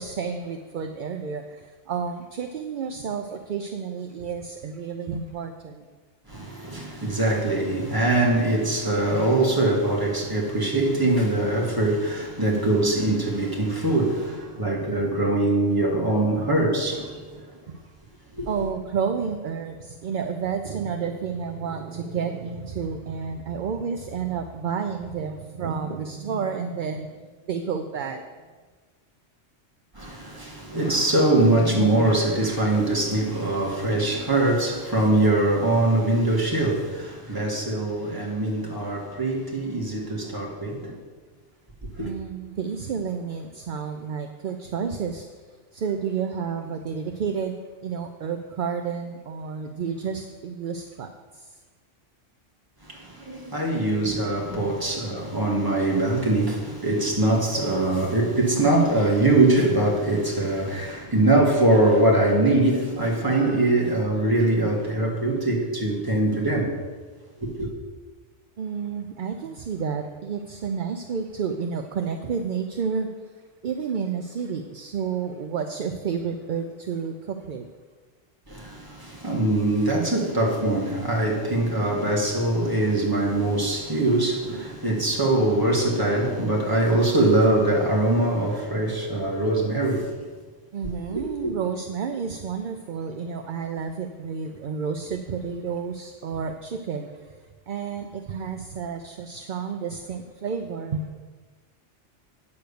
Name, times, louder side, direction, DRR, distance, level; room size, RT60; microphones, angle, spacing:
voice 1, 0.0-5.9 17.7-17.8 18.5-27.2 27.4-28.3 42.0-45.3 45.7-47.6 47.8-51.6 68.6-73.1 73.6-77.7 90.7-97.3 97.7-101.1, right 6 dB, 55° right, 0.6 m, -30 dB
voice 2, 6.3-17.4 18.4-18.5 30.0-41.0 42.0-42.1 52.8-66.8 67.4-67.7 78.5-90.1 91.1-91.2, right 2 dB, 20° right, 1.9 m, -22 dB
9.1 x 7.0 x 6.8 m
omnidirectional pair, 1.2 m